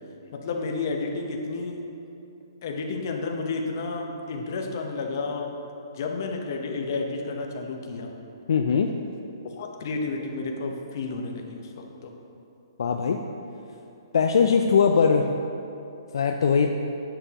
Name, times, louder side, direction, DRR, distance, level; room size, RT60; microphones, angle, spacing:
voice 1, 0.3-1.8 2.6-5.5 6.0-8.1 9.6-12.1, left 3 dB, 40° left, 2 dB, 0.8 m, -31 dB
voice 2, 8.5-8.9 12.8-13.2 14.1-15.3 16.1-16.7, left 6 dB, 65° left, 4 dB, 0.4 m, -20 dB
8.8 x 6.8 x 2.9 m, 2.7 s
hypercardioid pair, 165°, 3 cm